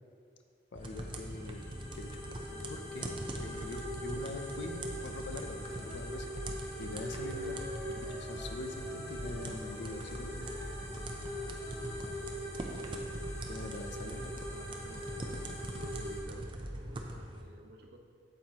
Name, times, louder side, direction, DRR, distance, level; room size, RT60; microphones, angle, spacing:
voice 1, 0.7-1.7 1.9-2.1 2.4-3.1 3.4-6.3 6.8-10.5 13.5-14.4, left 2 dB, 85° left, 6 dB, 0.5 m, -44 dB
sound 1, 0.8-16.2, equal, 35° left, 1.5 m, -43 dB
sound 2, 0.8-17.4, right 1 dB, 25° right, 0.6 m, -42 dB
Wind instrument woodwind instrument, 5.7-12.0, left 1 dB, 10° left, 2.1 m, -53 dB
voice 2, 14.0-15.5 15.7-18.0, right 1 dB, 65° right, 2 dB, 0.8 m, -52 dB
8.6 x 7.9 x 2.9 m, 2.3 s
head